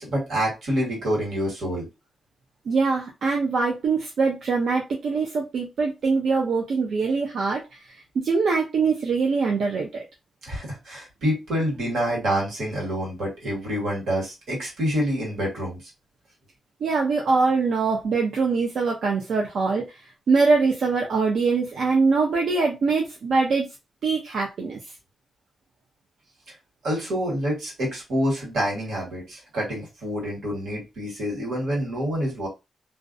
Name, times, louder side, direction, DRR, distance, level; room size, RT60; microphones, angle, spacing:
voice 1, 0.0-1.9 10.5-15.8 26.8-32.5, equal, 90° right, -2 dB, 1.5 m, -27 dB
voice 2, 2.7-7.6 7.9-10.0 16.8-19.9 20.3-23.7 24.0-24.8, right 4 dB, 65° right, 0 dB, 0.5 m, -23 dB
2.5 x 2.0 x 2.5 m, 0.23 s
wide cardioid pair, 150°, 0 cm